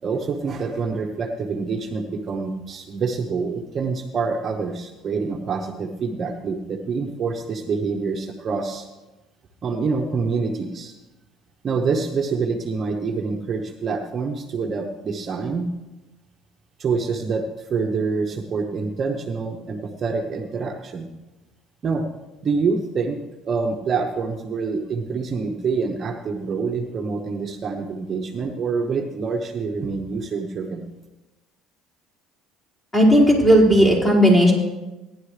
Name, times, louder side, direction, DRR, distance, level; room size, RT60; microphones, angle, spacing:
voice 1, 0.0-8.9 9.6-10.9 11.6-15.7 16.8-21.1 21.8-22.1 22.4-23.2 23.4-30.9, right 4 dB, 35° right, 2 dB, 0.9 m, -26 dB
voice 2, 32.9-34.5, equal, 20° left, -5 dB, 4.6 m, -14 dB
16.5 x 10.5 x 3.3 m, 1.1 s
cardioid pair, 130°, 0 cm